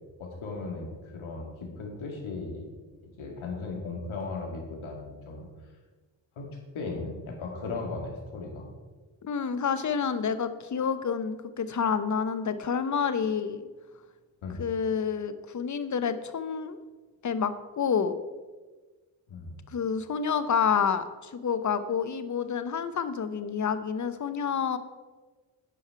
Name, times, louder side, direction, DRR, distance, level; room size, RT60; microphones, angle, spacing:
voice 1, 0.2-2.7 3.2-5.5 6.4-6.5 6.7-8.7 14.4-14.6 19.3-19.6, left 3 dB, 70° left, 1 dB, 2.1 m, -37 dB
voice 2, 9.2-13.7 14.6-16.8 17.2-18.2 19.7-24.8, left 6 dB, 35° left, 12 dB, 0.8 m, -28 dB
9.3 x 5.4 x 4.6 m, 1.3 s
supercardioid pair, 50°, 49 cm